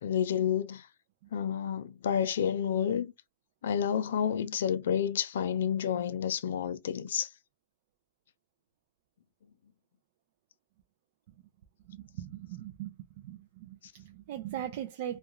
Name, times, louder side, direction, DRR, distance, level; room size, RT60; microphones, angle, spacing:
voice 1, 0.0-0.8 1.3-3.1 3.6-7.3, left 8 dB, 75° left, 0.4 m, -30 dB
voice 2, 11.9-15.2, right 11 dB, 50° right, 0.4 m, -40 dB
2.3 x 2.3 x 2.9 m
hypercardioid pair, 155°, 0 cm